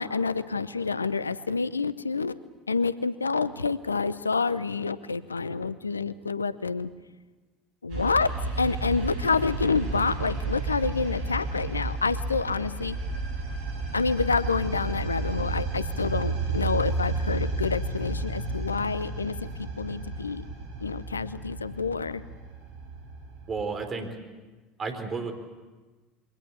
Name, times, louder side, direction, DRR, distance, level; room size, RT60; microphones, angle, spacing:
voice 1, 0.0-2.3 2.7-6.9 7.8-13.0 13.9-19.5 19.8-20.4 20.8-22.2, left 4 dB, 85° left, 16 dB, 0.7 m, -28 dB
sound 1, 7.9-23.6, right 3 dB, 60° right, 5.0 m, -32 dB
voice 2, 23.5-24.1 24.8-25.3, right 4 dB, 35° right, 6 dB, 4.0 m, -32 dB
23.5 x 18.0 x 8.3 m, 1.2 s
figure-of-eight pair, 70°, 0 cm